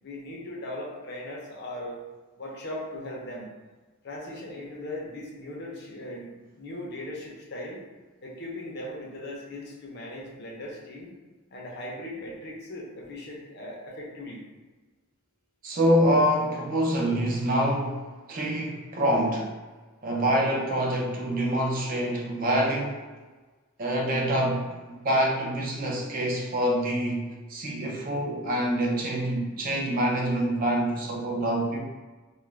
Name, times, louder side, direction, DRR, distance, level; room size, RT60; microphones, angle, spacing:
voice 1, 0.0-2.1 2.4-3.5 4.0-7.8 8.2-11.1 11.5-14.4, left 1 dB, 45° left, -3 dB, 0.5 m, -38 dB
voice 2, 15.6-19.5 20.0-23.0 23.8-31.8, equal, 40° right, -1 dB, 0.4 m, -26 dB
2.3 x 2.1 x 3.1 m, 1.3 s
head